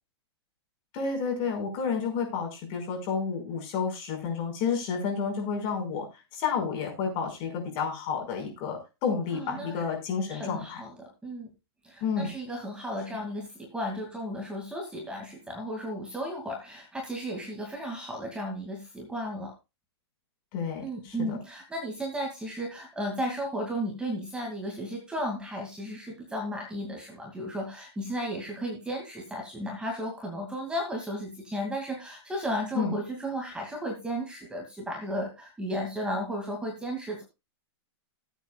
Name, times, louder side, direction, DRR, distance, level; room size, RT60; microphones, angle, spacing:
voice 1, 0.9-6.1 6.3-10.8 12.0-12.3 20.5-21.4 32.8-33.0, left 6 dB, 35° left, 2 dB, 5.1 m, -30 dB
voice 2, 9.3-9.8 10.3-11.5 11.8-19.5 20.8-37.2, equal, 5° right, 1 dB, 2.4 m, -34 dB
20.0 x 8.2 x 2.4 m, 0.25 s
hypercardioid pair, 150°, 14 cm